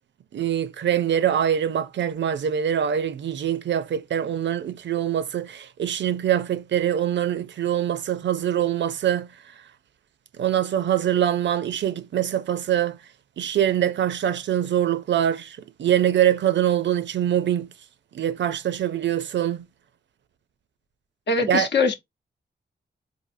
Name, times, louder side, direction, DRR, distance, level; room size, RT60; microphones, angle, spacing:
voice 1, 0.3-9.3 10.4-13.0 13.4-17.7 18.1-19.6 21.5-21.7, right 10 dB, 75° right, 0.4 m, -24 dB
voice 2, 21.3-21.9, left 4 dB, 65° left, 0.8 m, -22 dB
4.1 x 2.5 x 2.5 m
cardioid pair, 70°, 19 cm